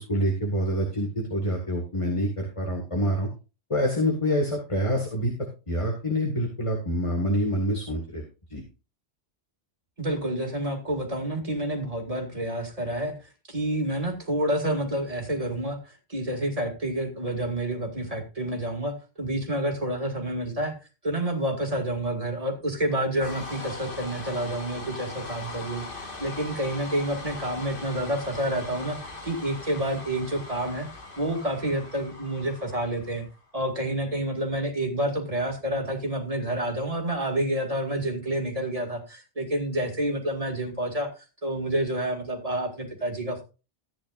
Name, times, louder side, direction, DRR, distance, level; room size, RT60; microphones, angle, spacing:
voice 1, 0.0-3.3 3.7-5.3 5.7-8.2 8.5-8.6, equal, 25° left, 2 dB, 1.9 m, -26 dB
voice 2, 10.0-13.1 13.5-20.7 21.0-30.9 31.2-33.3 33.5-43.4, right 1 dB, 30° right, 2 dB, 2.5 m, -29 dB
sound 1, 23.2-33.4, left 2 dB, 50° left, 1.9 m, -40 dB
14.5 x 9.5 x 2.5 m, 0.31 s
omnidirectional pair, 1.2 m